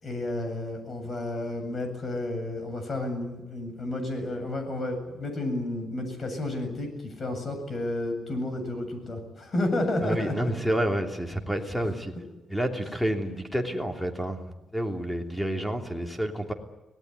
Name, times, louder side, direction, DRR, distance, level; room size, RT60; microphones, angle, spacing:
voice 1, 0.0-10.3, left 1 dB, 40° left, 6 dB, 7.8 m, -31 dB
voice 2, 10.0-12.1 12.5-14.4 14.7-16.5, right 1 dB, 5° left, 3 dB, 3.2 m, -29 dB
25.0 x 18.5 x 9.6 m, 1.1 s
cardioid pair, 120°, 0 cm